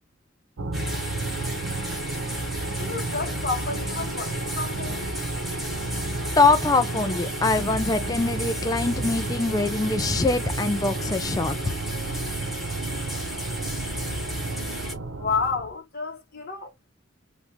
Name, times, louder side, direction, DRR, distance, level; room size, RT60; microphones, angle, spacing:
sound 1, 0.6-15.7, right 2 dB, 90° right, 0.7 m, -31 dB
sound 2, 0.7-14.9, left 1 dB, ahead, 1.3 m, -36 dB
voice 1, 2.7-5.1 15.1-16.7, left 4 dB, 50° left, 1.4 m, -30 dB
voice 2, 6.4-11.5, left 3 dB, 20° left, 0.3 m, -23 dB
3.2 x 2.5 x 3.0 m
head